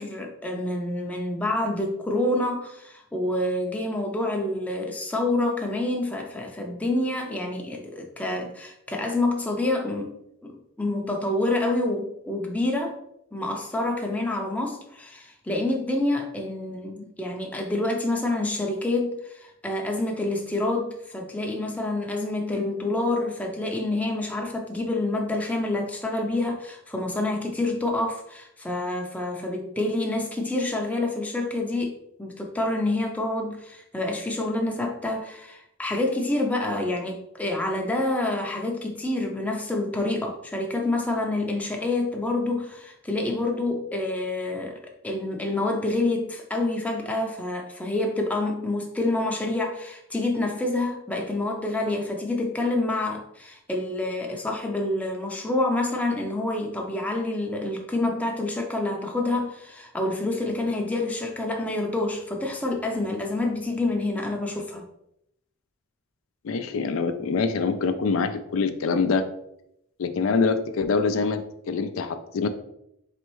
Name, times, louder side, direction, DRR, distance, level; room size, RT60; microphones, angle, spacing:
voice 1, 0.0-10.1 10.4-13.0 13.3-64.8, left 2 dB, 5° left, 0 dB, 0.5 m, -27 dB
voice 2, 66.4-69.2 70.0-72.5, left 4 dB, 80° left, 9 dB, 0.4 m, -25 dB
4.1 x 3.4 x 3.1 m, 0.77 s
head